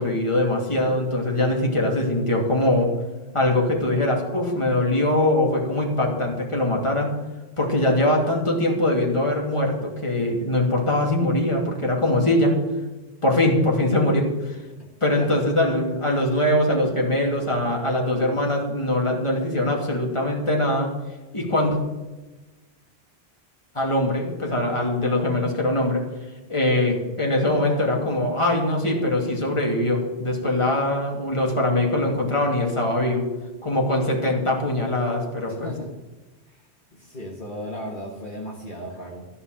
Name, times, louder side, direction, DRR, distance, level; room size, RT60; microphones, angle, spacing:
voice 1, 0.0-2.9 3.3-7.1 7.6-12.5 13.2-14.6 15.0-20.9 21.3-21.8 23.7-26.0 26.5-33.2 33.6-35.7, left 1 dB, 30° left, -1 dB, 2.7 m, -22 dB
voice 2, 35.5-35.9 36.5-36.6 36.9-39.3, equal, 50° left, -3 dB, 2.0 m, -36 dB
14.5 x 5.7 x 9.3 m, 1.1 s
omnidirectional pair, 1.1 m